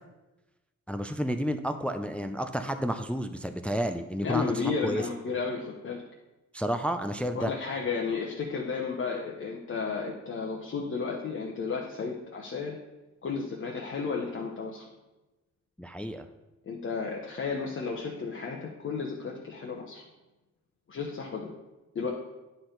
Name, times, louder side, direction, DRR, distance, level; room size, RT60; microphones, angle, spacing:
voice 1, 0.9-4.5 4.8-5.0 6.5-7.5 15.8-16.3, equal, 5° left, 8 dB, 0.3 m, -31 dB
voice 2, 4.2-6.0 7.3-12.8 13.2-14.8 16.7-20.0 20.9-21.5 21.9-22.1, left 5 dB, 40° left, -2 dB, 0.9 m, -33 dB
9.6 x 4.4 x 3.8 m, 1.1 s
cardioid pair, 105°, 30 cm